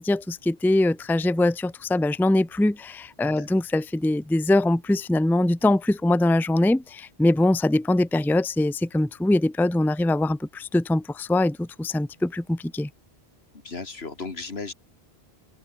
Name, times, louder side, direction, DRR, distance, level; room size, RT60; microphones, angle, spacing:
voice 1, 0.0-12.9, left 1 dB, ahead, 0.6 m, -23 dB
voice 2, 13.5-14.7, left 4 dB, 80° left, 2.5 m, -35 dB
open air
omnidirectional pair, 1.0 m